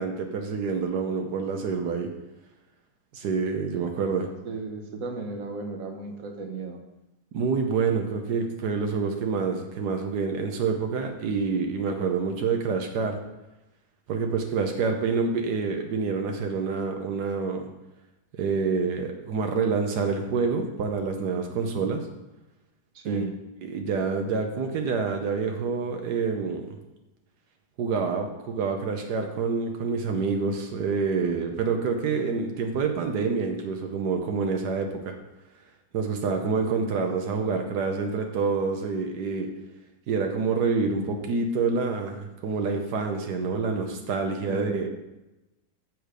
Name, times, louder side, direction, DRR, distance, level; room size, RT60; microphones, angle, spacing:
voice 1, 0.0-2.1 3.1-4.3 7.3-13.2 14.1-17.7 18.4-22.0 23.0-23.2 23.6-26.7 27.8-35.1 35.9-39.5 40.1-44.9, right 5 dB, 85° right, 4 dB, 1.4 m, -27 dB
voice 2, 4.4-6.8 21.5-21.9 22.9-23.3 36.6-36.9 44.5-44.9, right 3 dB, 60° right, 4 dB, 1.5 m, -35 dB
7.8 x 6.4 x 5.1 m, 0.99 s
omnidirectional pair, 1.7 m